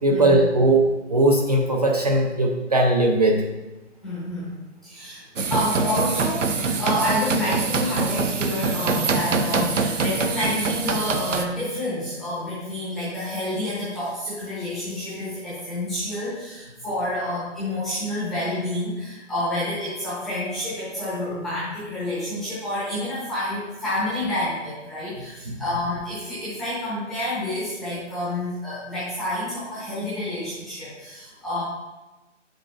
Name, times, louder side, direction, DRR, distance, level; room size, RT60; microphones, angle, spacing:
voice 1, 0.0-3.4 25.5-25.6, right 1 dB, 35° right, 1 dB, 0.5 m, -19 dB
voice 2, 4.0-4.5 4.8-5.2 5.5-31.6, left 1 dB, ahead, -11 dB, 0.7 m, -28 dB
sound 1, 5.4-11.4, right 4 dB, 80° right, 0.9 m, -24 dB
8.7 x 6.5 x 2.4 m, 1.1 s
hypercardioid pair, 155°, 36 cm